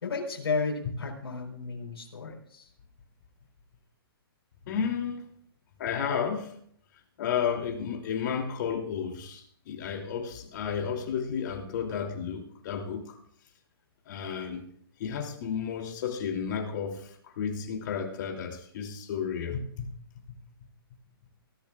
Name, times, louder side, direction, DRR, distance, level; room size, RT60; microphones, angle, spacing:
voice 1, 0.0-2.7, left 4 dB, 80° left, 4.5 m, -33 dB
voice 2, 4.7-5.2 5.8-6.5 7.2-13.2 14.1-14.6 15.0-19.9 20.3-20.4, left 7 dB, 50° left, 3.0 m, -32 dB
21.5 x 13.5 x 2.4 m
hypercardioid pair, 150°, 13 cm